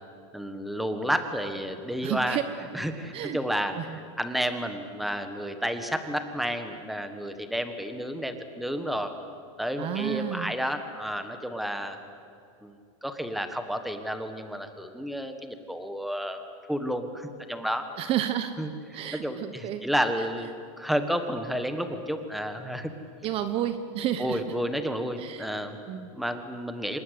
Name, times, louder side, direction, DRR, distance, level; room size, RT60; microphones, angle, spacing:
voice 1, 0.3-2.4 2.7-9.1 9.6-12.0 12.6-12.7 13.0-16.4 16.7-17.9 18.6-18.7 19.1-20.5 20.8-22.9 24.2-25.8 26.1-27.0, equal, ahead, 8 dB, 1.5 m, -31 dB
voice 2, 2.0-2.4 3.1-3.4 3.7-4.0 9.8-10.5 18.0-18.5 18.9-19.8 23.2-24.4 25.2-25.5 25.9-26.2, right 11 dB, 35° right, 11 dB, 1.0 m, -31 dB
26.0 x 20.5 x 8.3 m, 2.5 s
supercardioid pair, 150°, 18 cm